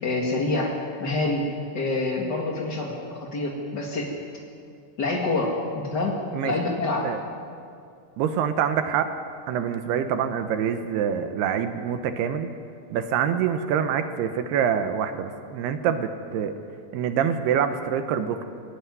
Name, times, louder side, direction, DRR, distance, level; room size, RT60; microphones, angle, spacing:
voice 1, 0.0-1.4 1.7-4.1 5.0-7.1, left 2 dB, 50° left, -1 dB, 1.3 m, -27 dB
voice 2, 8.2-9.1 9.5-12.5 12.9-16.5 16.9-18.4, right 8 dB, 75° right, 8 dB, 2.7 m, -25 dB
21.5 x 17.0 x 9.5 m, 2.4 s
omnidirectional pair, 5.2 m